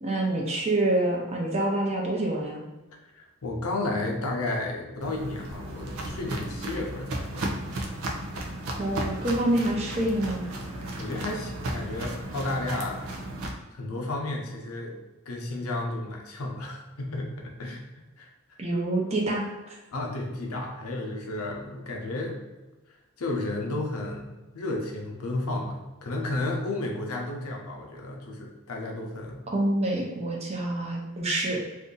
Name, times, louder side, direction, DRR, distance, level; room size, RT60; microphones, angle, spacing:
voice 1, 0.0-2.6 8.8-10.5 18.6-19.5 29.5-31.6, right 1 dB, 30° right, -2 dB, 0.6 m, -26 dB
voice 2, 3.2-7.5 11.0-13.1 13.7-14.9 15.3-17.8 18.2-18.3 19.9-22.4 23.2-29.4, left 2 dB, 85° left, 0 dB, 0.7 m, -32 dB
Walk footsteps, 5.0-13.5, right 1 dB, 75° right, 0.5 m, -34 dB
2.6 x 2.5 x 3.7 m, 1.2 s
head